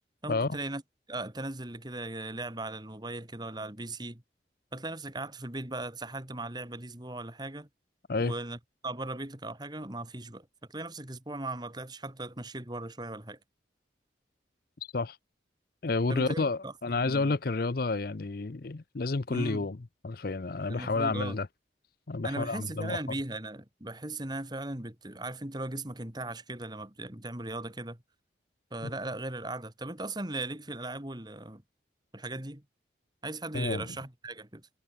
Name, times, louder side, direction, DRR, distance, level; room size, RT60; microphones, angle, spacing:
voice 1, 0.2-0.8 1.1-4.2 4.7-7.7 8.2-8.6 8.8-13.4 16.1-17.3 19.3-19.7 20.7-21.4 22.2-28.0 28.7-31.6 32.1-32.6 33.2-34.7, right 2 dB, 20° right, 2.3 m, -38 dB
voice 2, 15.8-19.8 20.0-21.5 22.1-23.0 28.8-28.9 33.5-33.9, left 3 dB, 50° left, 0.6 m, -30 dB
head